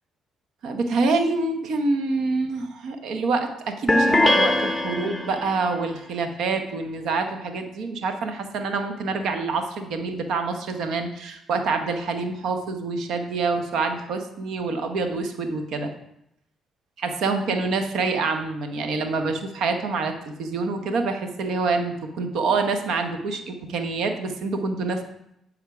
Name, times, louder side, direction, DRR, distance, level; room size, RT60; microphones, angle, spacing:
voice 1, 0.6-15.9 17.0-20.1 20.4-25.0, right 3 dB, 75° right, 6 dB, 0.8 m, -26 dB
sound 1, 3.9-5.6, left 1 dB, 10° left, 0.9 m, -21 dB
8.2 x 3.6 x 4.8 m, 0.80 s
supercardioid pair, 65°, 0 cm